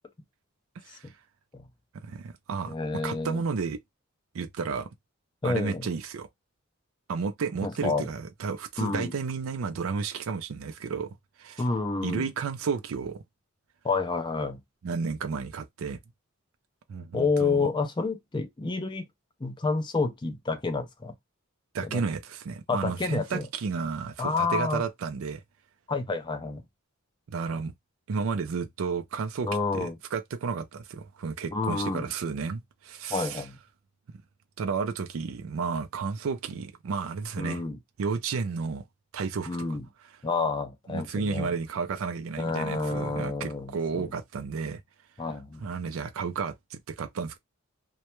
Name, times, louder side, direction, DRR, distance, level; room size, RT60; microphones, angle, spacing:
voice 1, 0.8-1.1 2.0-2.7 3.0-3.8 4.3-4.9 5.4-6.3 7.1-11.6 12.0-13.2 14.8-16.0 16.9-17.7 21.7-25.4 27.3-27.7 28.1-33.4 34.6-37.6 38.0-38.8 39.1-39.6 40.9-44.8 45.6-47.4, right 5 dB, 80° right, 0.4 m, -32 dB
voice 2, 2.7-3.4 5.4-5.9 7.6-8.1 8.8-9.1 11.6-12.3 13.8-14.6 17.1-19.1 19.4-21.1 21.8-22.0 22.7-23.5 24.2-24.9 25.9-26.6 29.4-30.0 31.5-32.1 33.1-33.6 37.4-37.8 39.5-39.9 40.2-41.5 42.4-44.1 45.2-45.7, left 4 dB, 20° left, 0.4 m, -29 dB
2.2 x 2.1 x 2.9 m
head